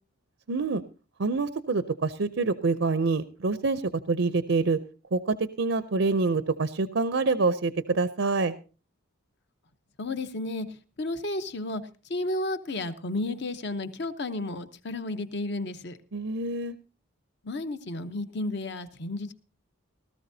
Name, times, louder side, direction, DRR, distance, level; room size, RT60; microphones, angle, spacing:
voice 1, 0.5-0.8 1.2-3.8 4.1-4.8 5.1-8.5 16.1-16.7, right 3 dB, 60° right, 12 dB, 0.5 m, -26 dB
voice 2, 10.0-10.7 11.0-11.8 12.1-16.0 17.4-19.3, left 2 dB, 50° left, 10 dB, 0.9 m, -32 dB
18.0 x 14.0 x 2.7 m, 0.35 s
head